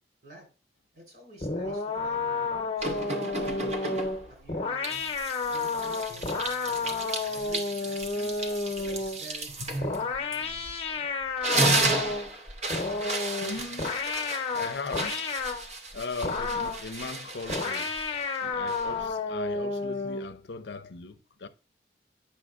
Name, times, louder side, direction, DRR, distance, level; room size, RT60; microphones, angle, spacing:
voice 1, 0.9-3.7 4.3-5.0 5.5-8.4 8.8-11.4, right 1 dB, 55° right, 3.6 m, -51 dB
sound 1, 1.4-9.2 9.8-12.3 12.7-15.7 16.2-16.9 17.5-20.3, left 3 dB, 35° left, 0.9 m, -31 dB
sound 2, 2.8-4.3 4.8-10.9 11.2-19.1, right 2 dB, 40° right, 0.7 m, -33 dB
voice 2, 13.4-14.0 14.5-15.3 15.9-21.5, left 4 dB, 80° left, 0.6 m, -39 dB
8.7 x 6.2 x 2.4 m
head